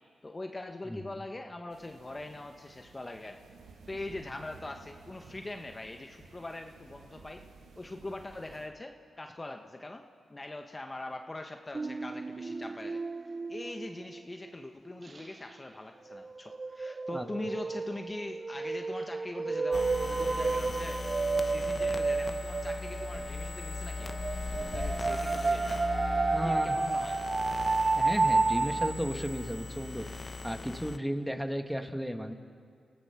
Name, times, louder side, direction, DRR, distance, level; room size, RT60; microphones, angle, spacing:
voice 1, 0.2-3.4 3.9-7.4 7.8-13.0 13.5-21.0 21.5-24.1 24.5-25.8 26.4-27.2, left 2 dB, 30° left, 4 dB, 1.2 m, -42 dB
voice 2, 0.9-1.2 17.1-17.3 26.3-26.9 28.0-30.1 30.4-32.3, equal, 5° right, 6 dB, 1.9 m, -34 dB
sound 1, 1.7-8.7, right 4 dB, 80° right, 1.9 m, -55 dB
sound 2, 11.7-14.7 15.1-15.3 16.1-23.5 23.8-28.9, right 3 dB, 40° right, 0.5 m, -31 dB
sound 3, 19.7-31.0, left 3 dB, 45° left, 0.9 m, -39 dB
30.0 x 15.0 x 6.0 m, 2.1 s
supercardioid pair, 45°, 0 cm